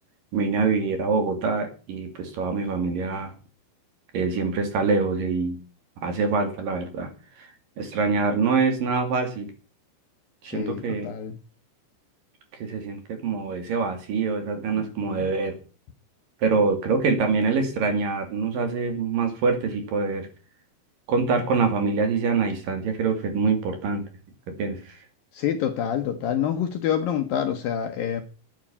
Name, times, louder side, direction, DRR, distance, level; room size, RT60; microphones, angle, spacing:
voice 1, 0.3-3.3 4.1-5.6 6.0-7.1 7.4-7.5 7.8-9.5 10.4-11.1 12.6-15.5 16.4-20.3 21.1-24.0 24.5-25.0, right 4 dB, 50° right, 3.8 m, -25 dB
voice 2, 10.4-11.3 14.8-15.3 25.3-28.2, left 9 dB, 75° left, 2.1 m, -27 dB
10.5 x 9.7 x 8.6 m
omnidirectional pair, 5.4 m